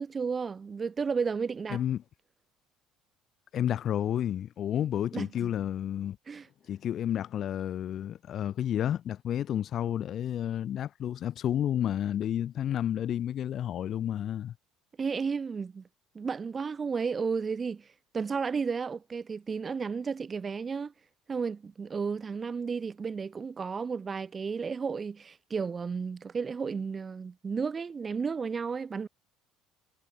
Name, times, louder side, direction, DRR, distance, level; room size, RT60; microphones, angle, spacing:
voice 1, 0.0-1.8 5.1-5.5 6.3-6.5 15.0-15.8 16.2-17.9 18.1-20.9 21.3-29.1, right 5 dB, 30° right, 3.5 m, -33 dB
voice 2, 1.7-2.0 3.5-6.2 6.7-14.5, left 10 dB, 50° left, 6.1 m, -31 dB
supercardioid pair, 80°, 0 cm